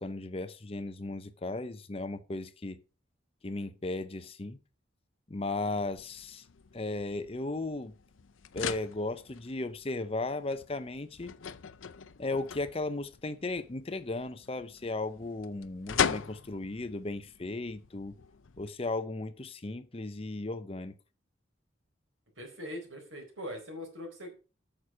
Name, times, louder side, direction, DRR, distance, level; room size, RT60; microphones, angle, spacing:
voice 1, 0.0-2.8 3.4-4.6 5.3-6.4 6.7-7.9 8.5-11.3 12.2-18.2 18.6-21.0, left 2 dB, 30° left, 0.6 m, -36 dB
sound 1, 5.8-18.7, left 7 dB, 85° left, 0.6 m, -40 dB
voice 2, 22.4-24.3, equal, 85° right, 4.4 m, -41 dB
8.9 x 6.4 x 5.6 m
head